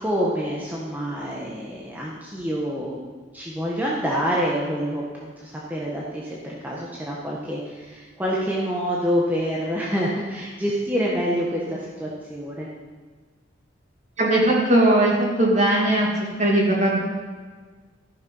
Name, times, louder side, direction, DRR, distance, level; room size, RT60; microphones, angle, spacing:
voice 1, 0.0-3.0 3.3-12.7, equal, 10° right, -5 dB, 1.4 m, -27 dB
voice 2, 14.2-16.1 16.4-17.0, right 1 dB, 35° right, -2 dB, 2.6 m, -19 dB
14.0 x 6.5 x 5.6 m, 1.4 s
head